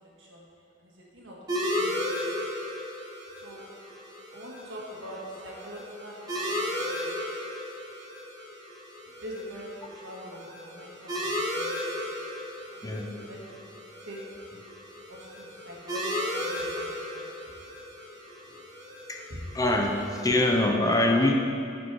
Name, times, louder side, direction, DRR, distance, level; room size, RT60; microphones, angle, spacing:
voice 1, 0.0-2.3 3.3-3.7 4.3-7.5 9.2-12.2 12.7-14.4 15.1-17.5 19.3-19.4, equal, 80° right, -4 dB, 1.7 m, -45 dB
sound 1, 1.5-20.6, left 1 dB, 20° right, 1.4 m, -35 dB
voice 2, 19.5-21.3, left 1 dB, 20° left, 1 dB, 0.6 m, -24 dB
9.1 x 5.3 x 4.7 m, 2.4 s
head